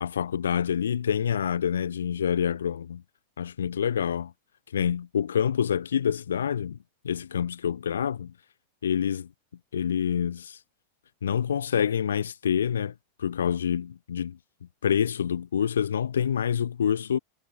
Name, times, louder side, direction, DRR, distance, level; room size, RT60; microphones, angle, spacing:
voice 1, 0.0-3.0 3.4-4.3 4.7-6.8 7.0-8.3 8.8-9.3 9.7-10.6 11.2-12.9 13.2-14.4 14.8-17.2, left 8 dB, 65° left, 0.8 m, -27 dB
figure-of-eight pair, 90°, 0 cm